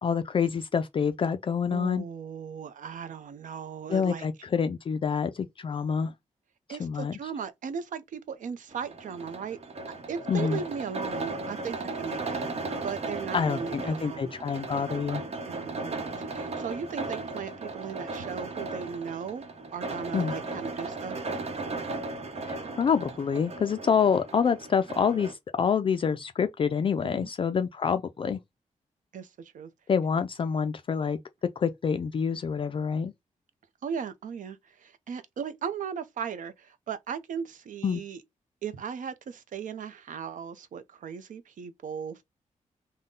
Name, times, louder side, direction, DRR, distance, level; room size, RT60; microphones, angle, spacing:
voice 1, 0.0-2.0 3.9-6.1 6.7-7.1 10.3-10.6 13.3-15.2 20.1-20.3 22.5-28.4 29.9-31.2 31.6-33.1 37.8-38.0, left 6 dB, 40° left, 0.3 m, -27 dB
voice 2, 1.7-4.3 6.7-9.6 10.1-14.3 15.5-19.5 19.7-21.2 27.0-27.3 29.1-29.7 33.8-38.2 38.6-42.2, right 7 dB, 80° right, 0.6 m, -37 dB
sound 1, 8.7-25.3, right 3 dB, 50° right, 0.9 m, -36 dB
3.7 x 2.2 x 3.7 m
wide cardioid pair, 130°, 13 cm